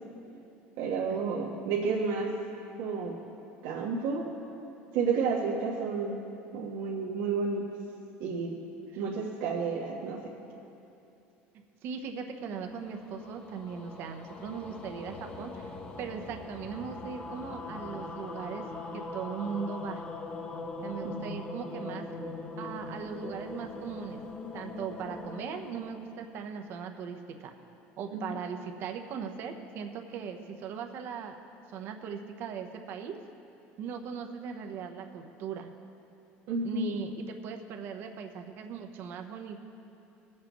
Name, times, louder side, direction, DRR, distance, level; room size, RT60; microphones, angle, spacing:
voice 1, 0.8-2.3 2.8-3.1 3.6-4.3 4.9-6.2 6.5-7.6 8.2-8.5 8.9-10.2 21.0-21.2 28.1-28.3 36.5-36.9, right 5 dB, 85° right, -4 dB, 1.3 m, -31 dB
voice 2, 11.8-15.7 16.0-18.7 18.9-20.0 20.8-22.1 22.6-24.2 24.5-27.5 28.0-31.4 31.7-33.2 33.8-35.7 36.6-39.6, right 6 dB, 55° right, 5 dB, 0.9 m, -39 dB
sound 1, 12.4-26.8, left 2 dB, 25° left, 0.8 m, -42 dB
21.0 x 7.5 x 3.1 m, 2.8 s
cardioid pair, 140°, 5 cm